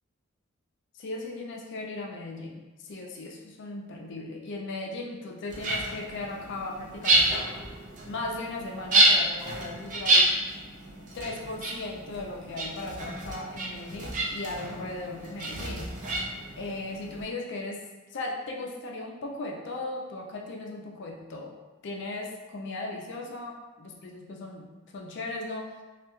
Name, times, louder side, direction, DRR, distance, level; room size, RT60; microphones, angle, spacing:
voice 1, 0.9-7.6 8.1-10.3 10.6-10.7 11.0-15.9 16.6-17.8 18.1-21.5 21.8-25.7, left 2 dB, 60° left, 0 dB, 0.4 m, -37 dB
sound 1, 5.5-17.2, right 1 dB, 40° right, 0.4 m, -28 dB
2.3 x 2.2 x 3.0 m, 1.2 s
head